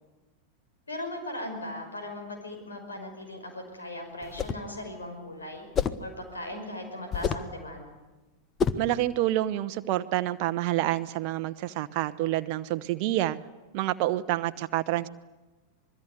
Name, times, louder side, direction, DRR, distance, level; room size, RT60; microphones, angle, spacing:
voice 1, 0.9-7.9, left 1 dB, 75° left, 5 dB, 5.7 m, -38 dB
sound 1, 4.2-4.7 5.8-6.1 7.1-7.5 8.6-8.9, left 6 dB, 25° left, 1.2 m, -28 dB
voice 2, 8.8-13.4 13.7-15.1, right 15 dB, 45° right, 9 dB, 0.9 m, -28 dB
26.0 x 22.0 x 9.3 m, 1.2 s
figure-of-eight pair, 90°, 0 cm